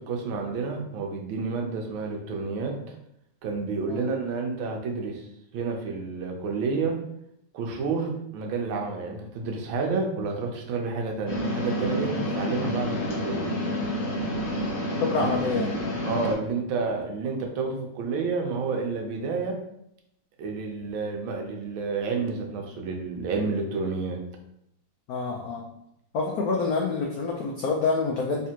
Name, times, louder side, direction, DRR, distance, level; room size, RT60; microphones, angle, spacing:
voice 1, 0.0-3.0 3.4-5.3 5.5-7.0 7.5-13.5 16.0-19.6 20.4-24.2, right 4 dB, 80° right, 2 dB, 1.5 m, -30 dB
sound 1, 11.3-16.3, left 1 dB, 50° left, 0.9 m, -29 dB
voice 2, 15.0-15.8 25.1-25.7 26.1-28.5, left 4 dB, 90° left, 0 dB, 0.8 m, -27 dB
3.5 x 3.2 x 2.8 m, 0.77 s
omnidirectional pair, 2.2 m